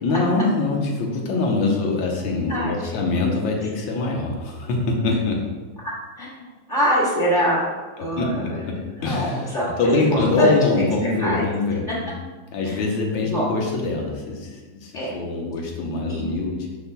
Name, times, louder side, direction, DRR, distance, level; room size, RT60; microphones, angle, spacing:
voice 1, 0.0-5.4 8.2-9.5 9.8-12.1 12.5-16.7, left 3 dB, 65° left, 0 dB, 1.7 m, -23 dB
voice 2, 5.8-7.7 8.0-8.6 9.0-11.4 12.7-13.5 14.9-15.1 16.1-16.2, equal, 35° left, -8 dB, 1.9 m, -25 dB
12.5 x 4.2 x 2.3 m, 1.3 s
omnidirectional pair, 2.3 m